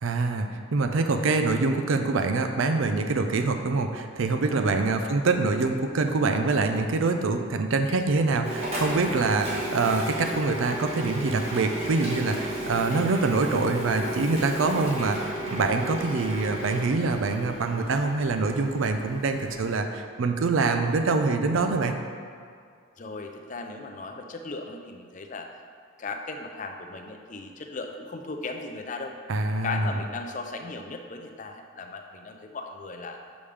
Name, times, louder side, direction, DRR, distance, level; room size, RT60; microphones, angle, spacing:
voice 1, 0.0-22.0 29.3-29.9, right 3 dB, 75° right, 6 dB, 0.5 m, -25 dB
Printer, 8.4-19.7, right 1 dB, 30° right, 1.3 m, -34 dB
voice 2, 14.6-15.0 23.0-25.5 26.0-29.1 29.6-33.2, left 3 dB, 35° left, 4 dB, 0.4 m, -37 dB
7.1 x 5.1 x 3.3 m, 2.2 s
head